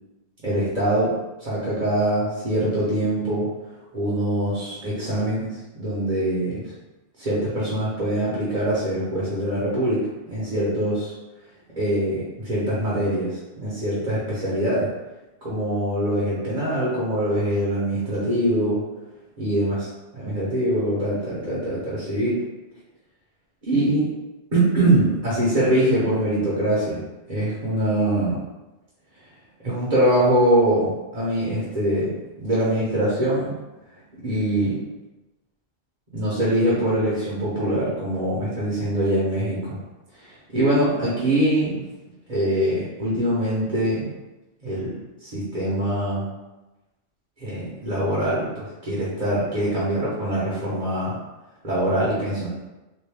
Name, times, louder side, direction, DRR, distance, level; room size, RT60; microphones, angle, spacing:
voice 1, 0.4-1.1 1.4-3.5 3.9-6.6 7.2-11.1 11.8-14.9 15.4-18.8 19.4-19.9 20.1-22.4 23.6-24.1 24.5-27.0 27.3-28.4 29.6-32.1 32.4-33.5 34.2-34.8 36.1-39.8 40.2-41.8 42.3-44.1 44.6-44.9 45.2-46.3 47.4-51.2 51.6-52.5, right 1 dB, 45° right, -8 dB, 1.1 m, -23 dB
3.4 x 2.6 x 3.5 m, 1.1 s
omnidirectional pair, 1.1 m